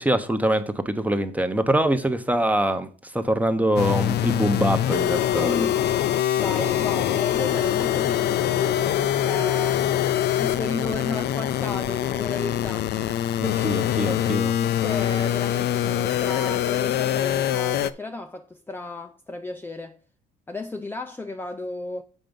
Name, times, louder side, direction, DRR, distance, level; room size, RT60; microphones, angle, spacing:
voice 1, 0.0-5.7 13.4-14.5, right 1 dB, 10° right, 1.0 m, -24 dB
sound 1, 3.8-17.9, left 11 dB, 60° left, 0.6 m, -24 dB
voice 2, 5.4-5.8 6.4-9.9 10.2-12.9 14.6-20.0 20.5-22.0, left 3 dB, 10° left, 0.6 m, -33 dB
7.6 x 5.2 x 5.2 m
cardioid pair, 95°, 19 cm